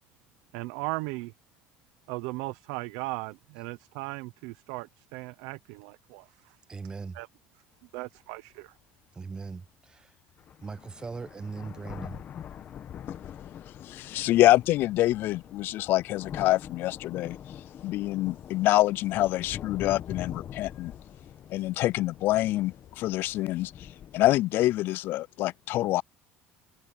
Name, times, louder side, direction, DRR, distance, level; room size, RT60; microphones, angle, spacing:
voice 1, 0.5-1.3 2.1-3.3 3.6-6.6 7.1-7.3 7.9-8.7, right 23 dB, 85° right, 0.8 m, -37 dB
voice 2, 6.7-7.2 9.1-10.1 10.6-12.2, right 4 dB, 20° right, 0.9 m, -39 dB
sound 1, 7.8-7.9 8.6-8.7 9.9-10.0 10.4-24.4, left 9 dB, 45° left, 1.2 m, -44 dB
voice 3, 13.8-17.4 17.8-20.9 21.5-26.0, left 16 dB, 60° left, 0.3 m, -26 dB
cardioid pair, 115°, 4 cm